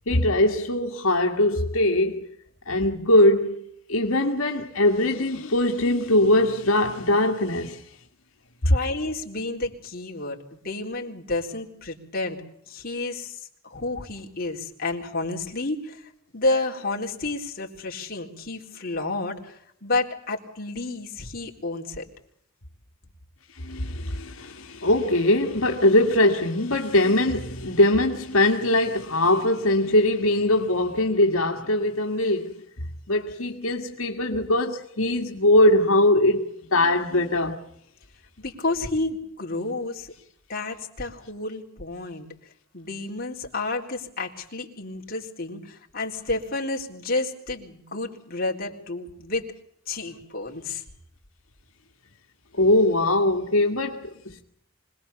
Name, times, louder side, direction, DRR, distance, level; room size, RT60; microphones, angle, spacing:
voice 1, 0.1-2.3 2.7-3.6 3.9-7.8 23.6-32.6 33.1-36.5 36.7-37.6 52.5-54.4, left 1 dB, 80° left, 2.0 m, -21 dB
voice 2, 8.6-12.4 12.7-22.0 38.4-40.1 40.5-42.3 42.7-49.5 49.9-50.8, left 2 dB, 45° left, 3.9 m, -30 dB
25.5 x 20.0 x 7.0 m
head